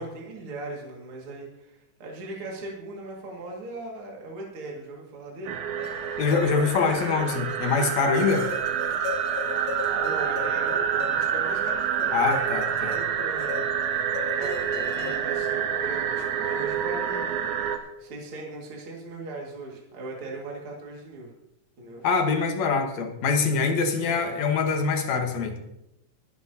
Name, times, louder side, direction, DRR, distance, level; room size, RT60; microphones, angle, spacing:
voice 1, 0.0-5.6 9.9-13.7 14.3-21.3 21.8-22.1 24.0-24.4, right 2 dB, 45° right, -2 dB, 2.8 m, -39 dB
sound 1, 5.5-17.8, right 8 dB, 70° right, 2.3 m, -28 dB
sound 2, 5.8-15.2, left 5 dB, 85° left, 2.9 m, -38 dB
voice 2, 6.2-8.5 12.1-12.9 22.0-25.6, left 5 dB, 65° left, 4 dB, 2.4 m, -24 dB
22.5 x 9.5 x 2.8 m, 0.85 s
omnidirectional pair, 3.7 m